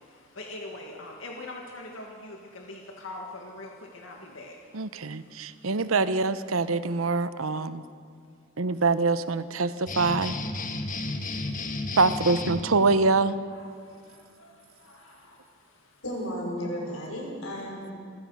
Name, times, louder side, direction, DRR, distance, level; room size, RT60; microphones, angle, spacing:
voice 1, 0.0-5.7 6.5-6.8 11.0-12.0 13.5-16.0, left 2 dB, 70° left, 0 dB, 1.9 m, -44 dB
voice 2, 4.7-7.8 8.6-10.4 12.0-13.4, right 3 dB, 85° right, 13 dB, 0.9 m, -24 dB
sound 1, 9.9-12.6, left 2 dB, 40° left, 1.5 m, -32 dB
voice 3, 16.0-18.0, equal, 90° left, -1 dB, 5.8 m, -34 dB
26.5 x 16.0 x 6.4 m, 2.3 s
head